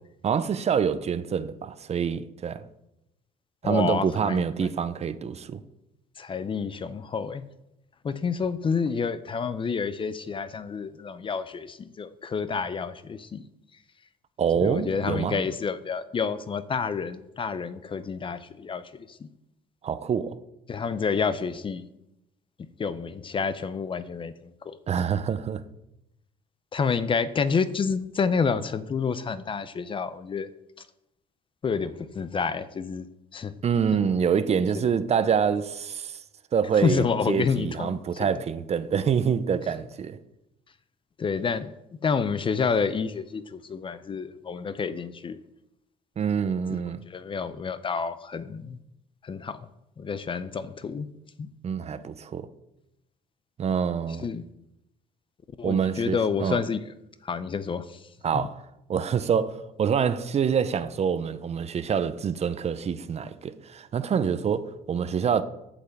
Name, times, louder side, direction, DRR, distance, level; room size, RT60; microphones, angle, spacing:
voice 1, 0.2-2.6 3.6-5.6 14.4-15.4 19.8-20.4 24.9-25.6 33.6-36.2 36.5-40.2 46.2-47.0 51.6-52.5 53.6-54.3 55.6-56.6 58.2-58.6 58.9-65.4, right 7 dB, 40° right, 0.7 m, -26 dB
voice 2, 3.6-4.4 6.2-7.4 8.0-13.4 14.6-19.3 20.7-21.8 22.8-24.3 24.6-24.8 26.7-30.5 31.6-33.1 33.3-33.5 34.8-34.9 36.8-38.3 41.2-41.7 42.0-45.4 47.1-48.8 49.2-49.7 50.0-51.1 51.4-51.5 54.2-54.5 55.6-56.8 57.2-58.0 58.3-58.5, left 5 dB, 30° left, 0.6 m, -29 dB
8.5 x 5.5 x 7.9 m
cardioid pair, 110°, 17 cm